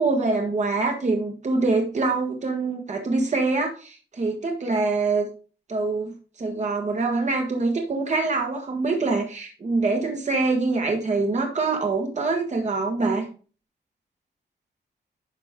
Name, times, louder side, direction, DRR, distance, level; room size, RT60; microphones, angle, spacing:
voice 1, 0.0-5.3 5.7-13.3, right 3 dB, 40° right, 2 dB, 1.5 m, -24 dB
10.5 x 6.0 x 3.6 m, 0.37 s
wide cardioid pair, 160°, 17 cm